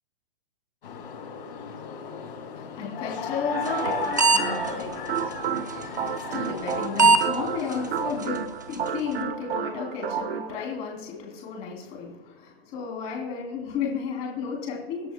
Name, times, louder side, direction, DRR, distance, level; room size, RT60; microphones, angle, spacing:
sound 1, 0.8-8.2, left 7 dB, 65° left, 4.1 m, -35 dB
voice 1, 2.5-15.1, left 6 dB, 20° left, -1 dB, 3.1 m, -33 dB
sound 2, 3.5-10.6, right 8 dB, 70° right, 1.2 m, -31 dB
sound 3, 3.7-3.9 4.2-4.4 4.7-4.8 5.7-5.8 6.7-6.8 7.0-7.2 7.7-7.8 8.2-8.3 8.7-8.8, right 4 dB, 20° right, 0.3 m, -17 dB
24.5 x 11.0 x 2.2 m, 1.0 s
hypercardioid pair, 175°, 31 cm